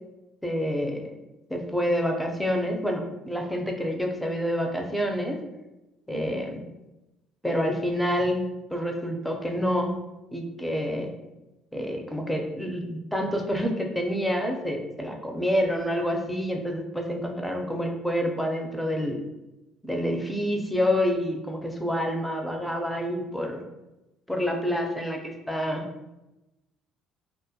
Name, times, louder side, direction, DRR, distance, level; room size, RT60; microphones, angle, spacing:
voice 1, 0.4-1.0 1.5-5.4 6.1-6.6 7.4-8.4 8.7-9.9 10.3-11.1 11.7-19.2 19.8-23.6 24.3-25.9, equal, 5° left, 2 dB, 0.4 m, -28 dB
2.2 x 2.1 x 2.7 m, 1.0 s
supercardioid pair, 80°, 0 cm